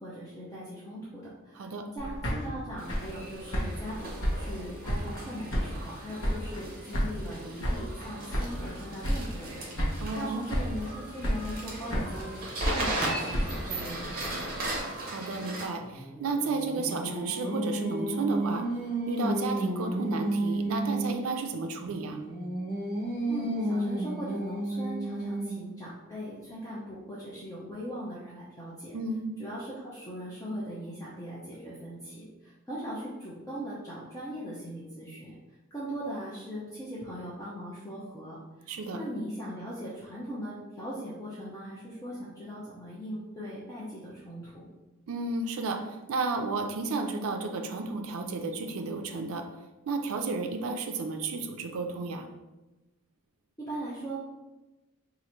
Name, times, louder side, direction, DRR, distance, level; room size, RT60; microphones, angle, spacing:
voice 1, 0.0-9.6 10.2-14.5 23.3-28.9 29.4-35.3 35.7-44.7 53.6-54.2, equal, 15° left, -8 dB, 0.6 m, -39 dB
voice 2, 1.6-1.9 10.0-10.4 15.0-18.7 19.1-22.2 28.9-29.2 38.7-39.0 45.1-49.5 49.9-52.3, right 3 dB, 75° right, 5 dB, 0.4 m, -32 dB
sound 1, 2.0-5.2 5.5-6.6 6.9-8.7 9.0-9.5 9.8-10.2 10.5-10.9 11.2-12.3 12.6-14.8, equal, 65° left, 0.9 m, -32 dB
sound 2, 2.8-15.6, right 1 dB, 40° right, 0.8 m, -38 dB
Singing, 15.8-21.2 21.8-25.7, right 1 dB, 30° left, 1.4 m, -32 dB
2.9 x 2.5 x 4.3 m, 1.1 s
head